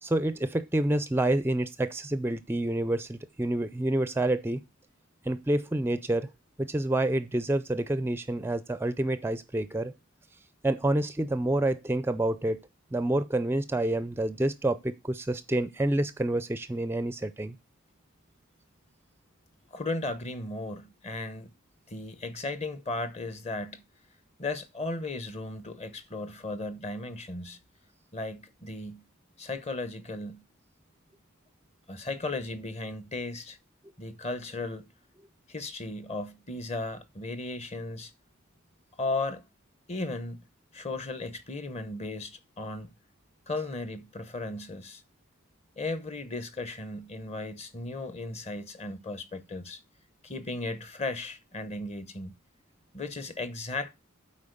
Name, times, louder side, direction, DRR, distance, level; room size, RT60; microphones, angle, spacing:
voice 1, 0.0-4.6 5.2-6.3 6.6-9.9 10.6-12.6 12.9-17.5, right 1 dB, 10° right, 0.4 m, -28 dB
voice 2, 19.7-21.5 21.9-23.8 24.4-27.6 28.1-29.1 29.4-30.4 31.9-33.6 34.0-34.9 35.5-38.1 39.0-39.4 39.9-40.5 40.7-42.9 43.5-45.0 45.8-49.8 50.2-52.3 52.9-53.9, left 2 dB, 30° left, 0.9 m, -36 dB
8.5 x 4.4 x 6.7 m
head